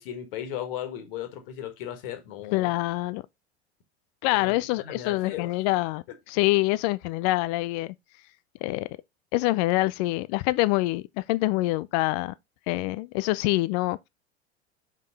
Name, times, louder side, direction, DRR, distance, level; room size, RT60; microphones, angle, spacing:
voice 1, 0.0-2.7 4.4-5.5, left 10 dB, 55° left, 1.8 m, -36 dB
voice 2, 2.5-3.2 4.2-7.9 8.6-8.9 9.3-12.3 12.7-14.1, left 19 dB, 40° left, 0.4 m, -25 dB
5.3 x 5.2 x 3.9 m
figure-of-eight pair, 80°, 33 cm